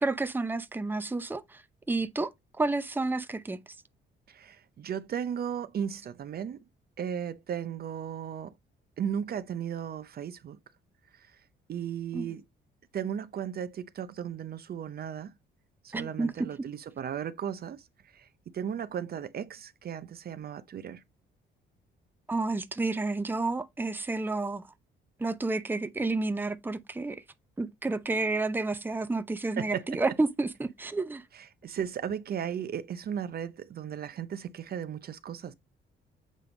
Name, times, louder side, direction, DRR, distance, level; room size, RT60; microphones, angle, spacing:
voice 1, 0.0-1.6 1.9-2.3 2.6-3.6 12.1-12.3 15.9-16.3 22.3-24.7 25.2-27.2 27.6-31.2, right 3 dB, 10° right, 0.6 m, -30 dB
voice 2, 4.3-6.6 7.0-8.5 9.0-10.6 11.1-11.3 11.7-12.4 12.9-15.3 15.8-17.9 18.1-18.3 18.5-21.0 29.6-30.0 31.3-35.5, right 8 dB, 50° right, 0.6 m, -35 dB
7.5 x 3.4 x 3.8 m
cardioid pair, 90°, 20 cm